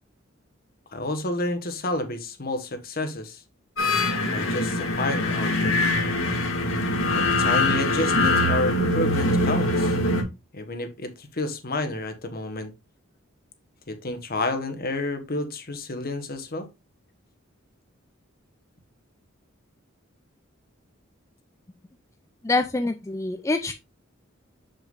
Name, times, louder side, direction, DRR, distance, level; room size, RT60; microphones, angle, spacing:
voice 1, 0.9-3.4 4.3-5.9 7.1-10.0 10.5-12.7 13.9-16.7, left 2 dB, 50° left, 1.3 m, -30 dB
sound 1, 3.8-10.2, left 2 dB, 80° left, 1.9 m, -23 dB
voice 2, 22.4-23.7, left 3 dB, 15° left, 0.4 m, -25 dB
7.1 x 6.4 x 2.5 m
head